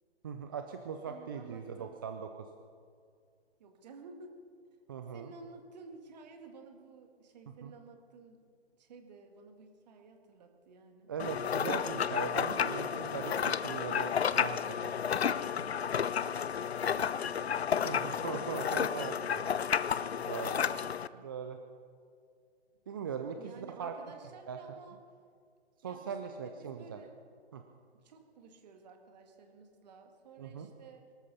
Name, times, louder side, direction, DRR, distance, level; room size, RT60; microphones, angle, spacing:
voice 1, 0.2-2.5 4.9-5.3 7.6-7.7 11.1-13.3 13.6-15.6 17.8-19.5 20.3-20.8 21.1-21.6 22.9-23.9 24.5-24.6 25.8-27.0 27.5-27.6 30.4-30.7, right 6 dB, 20° right, 6 dB, 0.5 m, -40 dB
voice 2, 1.1-2.0 3.6-4.4 5.1-11.1 12.4-13.6 15.9-17.4 23.4-25.0 25.8-27.1 28.0-31.1, right 4 dB, 40° right, 4 dB, 2.2 m, -53 dB
sound 1, 11.2-21.1, left 7 dB, 70° left, 0.6 m, -32 dB
23.5 x 13.0 x 4.2 m, 2.2 s
figure-of-eight pair, 140°, 33 cm